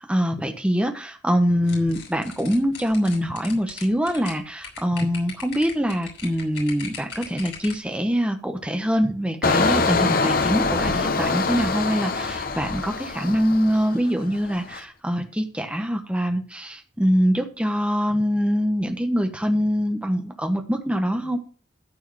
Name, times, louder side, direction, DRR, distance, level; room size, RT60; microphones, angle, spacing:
voice 1, 0.0-21.4, equal, 5° right, 4 dB, 1.1 m, -24 dB
sound 1, 1.7-7.9, left 6 dB, 65° left, 4.9 m, -39 dB
Engine, 9.4-14.1 14.5-14.8, left 3 dB, 50° left, 1.0 m, -24 dB
13.0 x 4.6 x 6.3 m, 0.38 s
head